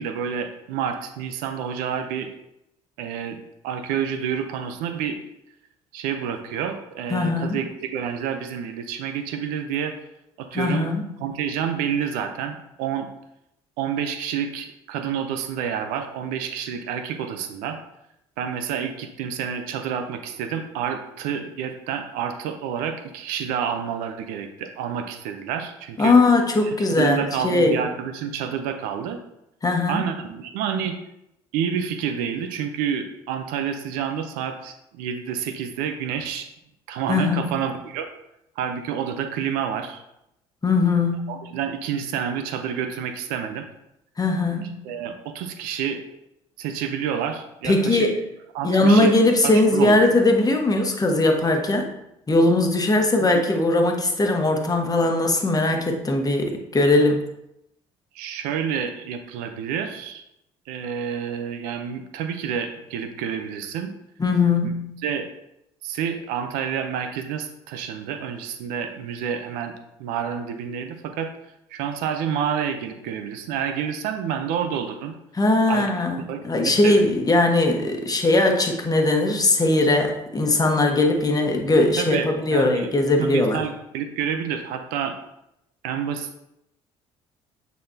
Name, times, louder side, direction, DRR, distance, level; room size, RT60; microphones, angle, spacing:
voice 1, 0.0-2.3 3.0-3.4 3.6-5.2 5.9-9.9 10.4-10.9 11.2-13.1 13.8-17.8 18.4-26.1 26.9-29.2 29.9-30.9 31.5-36.5 36.9-38.1 38.6-40.0 41.3-43.7 44.8-46.0 46.6-48.1 48.5-49.1 49.4-50.1 53.2-53.4 58.1-60.2 60.7-63.9 64.6-64.7 65.0-65.3 65.8-69.7 70.0-71.3 71.7-75.1 75.7-77.0 82.0-82.9 83.2-85.1 85.8-86.4, right 8 dB, 75° right, 7 dB, 0.7 m, -29 dB
voice 2, 7.1-7.6 10.5-11.1 26.0-27.8 29.6-30.1 37.1-37.6 40.6-41.4 44.2-44.9 47.6-48.2 48.6-51.9 52.3-57.3 64.2-65.0 75.3-83.6, left 2 dB, 25° left, 3 dB, 1.3 m, -20 dB
8.4 x 4.1 x 2.8 m, 0.83 s
hypercardioid pair, 60°, 15 cm